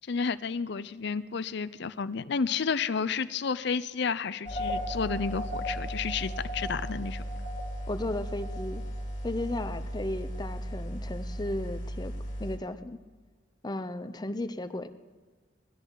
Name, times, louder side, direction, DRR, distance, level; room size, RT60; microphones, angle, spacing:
voice 1, 0.1-7.2, left 5 dB, 65° left, 14 dB, 0.6 m, -31 dB
sound 1, 4.4-12.6, equal, 45° left, 2.7 m, -35 dB
voice 2, 7.9-8.8 9.2-12.1 12.4-13.0 13.6-14.9, left 1 dB, 20° left, 11 dB, 0.7 m, -35 dB
21.5 x 17.0 x 3.9 m, 1.4 s
head